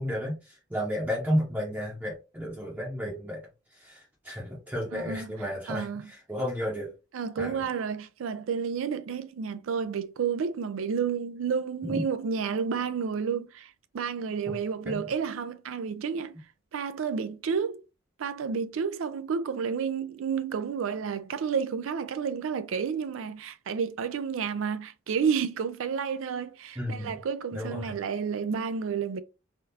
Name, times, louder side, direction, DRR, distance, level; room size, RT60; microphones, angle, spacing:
voice 1, 0.0-3.4 3.7-6.9 7.4-7.7 11.8-12.0 14.9-15.0 26.8-27.1 27.5-27.9, equal, 10° right, 0.8 m, -32 dB
voice 2, 4.9-5.3 5.7-6.1 7.1-16.4 16.7-17.8 18.2-29.2, right 6 dB, 85° right, 0.4 m, -31 dB
3.5 x 2.4 x 2.7 m
head